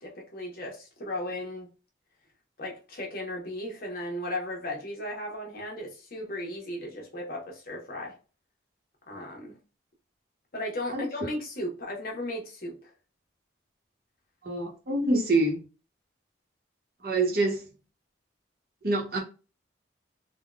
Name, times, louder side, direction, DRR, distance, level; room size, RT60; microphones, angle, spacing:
voice 1, 0.0-1.7 2.6-8.2 9.1-9.5 10.5-12.8, left 1 dB, 50° left, 1.0 m, -36 dB
voice 2, 14.4-15.6 17.0-17.6 18.8-19.2, right 2 dB, 50° right, 0.9 m, -25 dB
3.6 x 2.2 x 2.3 m
head